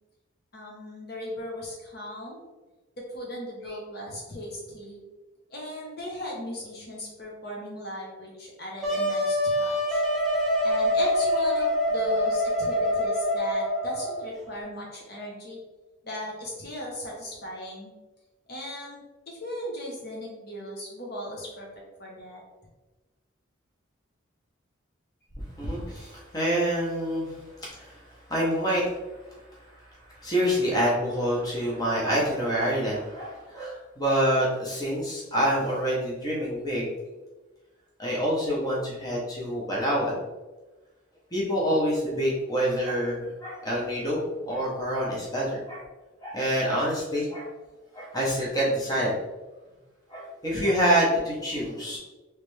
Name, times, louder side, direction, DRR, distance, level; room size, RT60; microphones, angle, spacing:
voice 1, 0.5-2.4 3.0-5.0 5.5-10.0 10.6-15.6 16.0-17.9 18.5-22.4, left 1 dB, 50° left, -3 dB, 0.8 m, -37 dB
Wind instrument woodwind instrument, 8.8-14.3, equal, ahead, 0.5 m, -25 dB
voice 2, 25.6-28.9 29.3-36.9 38.0-40.2 41.3-45.8 46.2-47.5 47.9-49.2 50.1-52.0, equal, 20° left, -5 dB, 0.9 m, -27 dB
3.2 x 3.2 x 3.2 m, 1.2 s
head